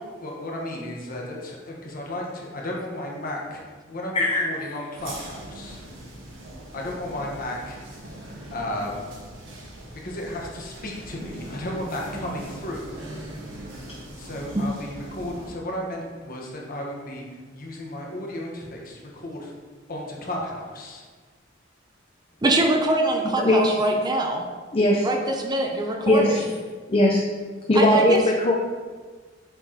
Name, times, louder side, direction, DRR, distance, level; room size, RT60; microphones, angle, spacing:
voice 1, 0.1-3.6 3.9-5.8 6.7-8.0 8.5-8.9 10.0-13.0 14.2-17.2 17.5-19.5 19.9-21.0, left 1 dB, 50° left, -1 dB, 1.1 m, -34 dB
sound 1, 5.0-15.5, right 1 dB, 80° right, 1.3 m, -41 dB
voice 2, 22.4-24.5 25.0-26.4 27.7-28.2, right 2 dB, 20° right, 1 dB, 0.5 m, -23 dB
voice 3, 23.4-23.8 24.7-25.1 26.1-26.4 26.9-27.2 27.7-28.5, left 1 dB, 30° left, -1 dB, 0.5 m, -19 dB
7.8 x 4.7 x 2.8 m, 1.5 s
head